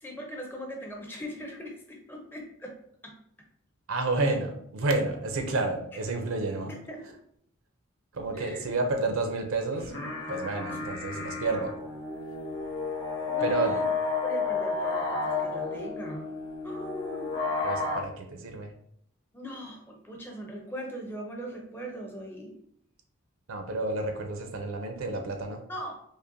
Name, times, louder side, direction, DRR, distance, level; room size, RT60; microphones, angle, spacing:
voice 1, 0.0-3.2 6.9-7.2 8.3-8.7 10.7-10.8 13.3-13.9 14.2-16.3 16.6-17.5 19.3-22.6 25.7-26.0, equal, 10° left, 1 dB, 0.5 m, -39 dB
voice 2, 3.9-6.7 8.1-9.9 10.3-11.7 13.4-13.8 17.6-18.7 23.5-25.6, right 2 dB, 70° right, 4 dB, 0.6 m, -30 dB
sound 1, 9.7-18.0, left 4 dB, 55° left, 1.0 m, -32 dB
5.2 x 2.1 x 2.6 m, 0.71 s
head